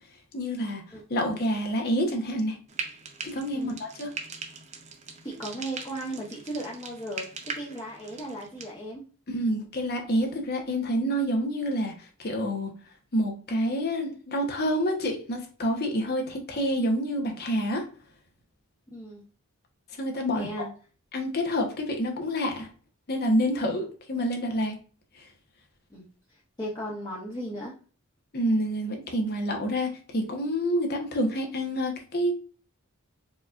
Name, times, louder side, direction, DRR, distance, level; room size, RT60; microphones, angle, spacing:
voice 1, 0.3-0.8 1.1-2.6 3.2-4.1 9.3-12.7 13.1-17.9 20.0-20.6 21.1-22.7 23.1-24.7 25.2-25.3 28.3-32.3, equal, 50° left, 3 dB, 0.9 m, -28 dB
Frying (food), 2.7-8.7, right 5 dB, 35° right, 0.5 m, -40 dB
voice 2, 5.2-7.2 7.5-9.0 18.9-19.2 20.3-20.7 23.6-23.8 25.9-26.0 26.6-27.7, right 1 dB, 20° left, -6 dB, 0.8 m, -36 dB
4.6 x 2.7 x 2.4 m, 0.39 s
head